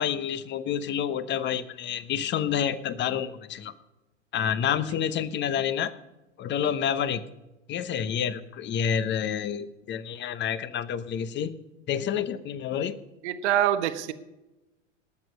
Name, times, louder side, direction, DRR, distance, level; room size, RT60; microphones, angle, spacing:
voice 1, 0.0-3.7 4.3-5.9 6.4-7.2 7.7-11.5 11.9-13.0, left 8 dB, 30° left, 14 dB, 1.0 m, -28 dB
voice 2, 13.2-14.1, right 11 dB, 60° right, 10 dB, 1.2 m, -25 dB
19.5 x 7.8 x 5.3 m, 0.98 s
hypercardioid pair, 100°, 38 cm